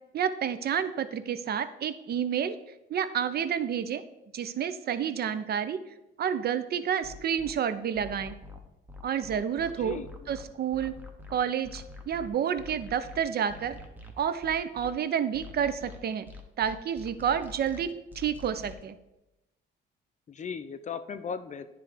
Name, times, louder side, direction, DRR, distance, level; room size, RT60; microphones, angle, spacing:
voice 1, 0.1-2.6 2.9-4.0 4.3-5.8 6.2-8.3 9.0-10.0 10.3-11.0 11.3-13.8 14.2-16.3 16.6-17.9 18.2-19.0, right 8 dB, 55° right, 12 dB, 0.6 m, -29 dB
sound 1, 7.0-7.5 8.0-14.9 15.3-18.8, left 3 dB, 10° right, 0.9 m, -45 dB
voice 2, 9.8-10.3 20.3-21.7, left 6 dB, 40° left, 11 dB, 0.5 m, -37 dB
9.8 x 3.4 x 4.9 m, 0.96 s
cardioid pair, 90°, 20 cm